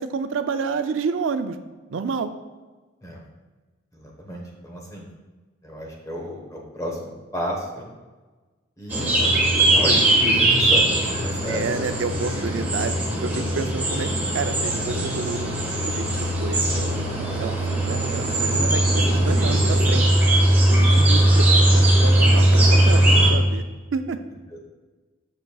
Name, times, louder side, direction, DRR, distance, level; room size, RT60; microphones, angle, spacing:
voice 1, 0.0-1.6 1.9-2.3 11.5-12.9 13.2-16.1 16.4-20.1 20.7-23.6 23.9-24.2, right 4 dB, 70° right, 9 dB, 0.4 m, -29 dB
voice 2, 3.9-5.1 5.6-7.9 8.8-12.0, equal, 15° left, 0 dB, 1.1 m, -32 dB
sound 1, 8.9-23.3, right 1 dB, 10° right, 1.3 m, -19 dB
8.1 x 6.5 x 2.3 m, 1.3 s
head